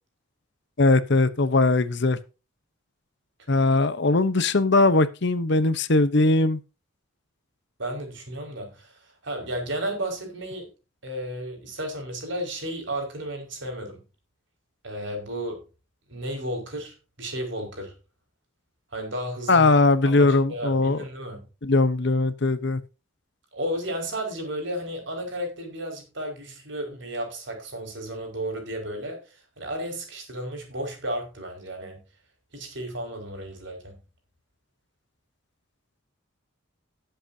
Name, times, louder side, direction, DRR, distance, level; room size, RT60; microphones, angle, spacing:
voice 1, 0.8-2.2 3.5-6.6 19.5-21.0 21.6-22.8, left 2 dB, 55° left, 13 dB, 0.9 m, -20 dB
voice 2, 7.8-10.7 11.0-14.0 14.8-15.6 16.1-17.9 18.9-19.7 20.1-21.4 23.5-32.0 32.5-34.0, right 1 dB, 60° right, 3 dB, 5.3 m, -33 dB
18.5 x 7.9 x 2.8 m, 0.31 s
head